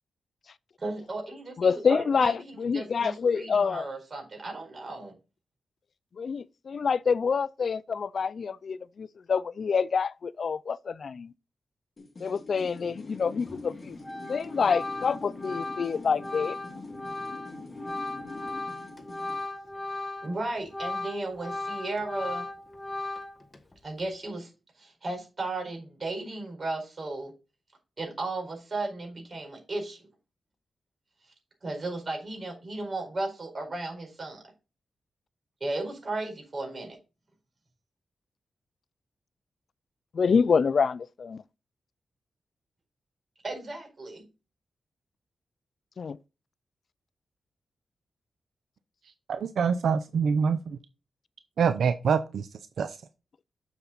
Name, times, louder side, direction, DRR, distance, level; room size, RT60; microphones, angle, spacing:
voice 1, 0.8-5.1 20.2-22.5 23.8-24.5 24.8-27.3 28.0-30.0 31.6-34.4 35.6-37.0 43.4-44.2, right 2 dB, 40° right, 4.7 m, -35 dB
voice 2, 1.6-3.8 6.2-11.3 12.2-14.0 14.3-16.6 40.1-41.4 46.0-46.2, left 5 dB, 60° left, 0.3 m, -27 dB
sound 1, 12.0-19.5, left 3 dB, 35° left, 2.6 m, -43 dB
Organ, 13.5-13.7 14.0-20.4 20.7-23.6, left 2 dB, 15° left, 1.4 m, -37 dB
voice 3, 49.3-50.8 51.6-52.5 52.8-53.0, right 6 dB, 80° right, 0.6 m, -25 dB
7.2 x 6.9 x 4.0 m
cardioid pair, 85°, 0 cm